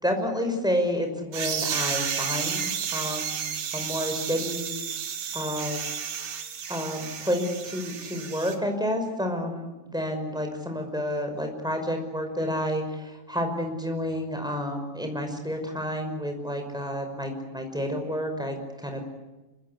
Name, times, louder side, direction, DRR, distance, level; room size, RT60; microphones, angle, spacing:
voice 1, 0.0-3.4 3.7-4.8 5.3-5.8 6.7-19.0, equal, ahead, 4 dB, 4.9 m, -30 dB
sound 1, 1.3-8.5, right 7 dB, 55° right, 3.5 m, -32 dB
27.0 x 24.5 x 8.5 m, 1.1 s
omnidirectional pair, 5.9 m